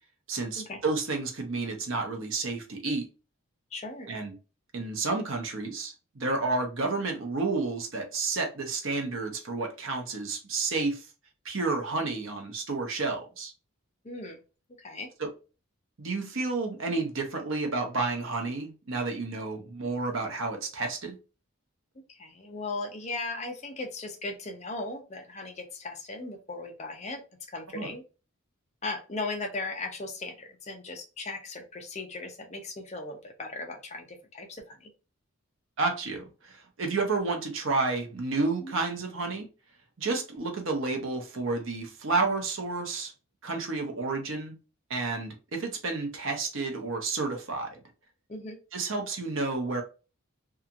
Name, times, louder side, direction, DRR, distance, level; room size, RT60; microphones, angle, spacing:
voice 1, 0.3-3.1 4.1-4.3 4.7-11.1 11.4-13.5 15.2-15.3 16.0-21.2 27.7-27.9 35.8-39.5 40.0-43.1 43.4-44.5 44.9-47.7 48.7-49.8, right 3 dB, 65° right, 0.8 m, -30 dB
voice 2, 3.7-4.1 14.0-14.4 14.8-15.1 21.9-27.2 27.5-28.0 28.8-34.9 38.6-38.8 48.3-48.6, left 3 dB, 30° left, 0.5 m, -37 dB
2.8 x 2.4 x 2.4 m
head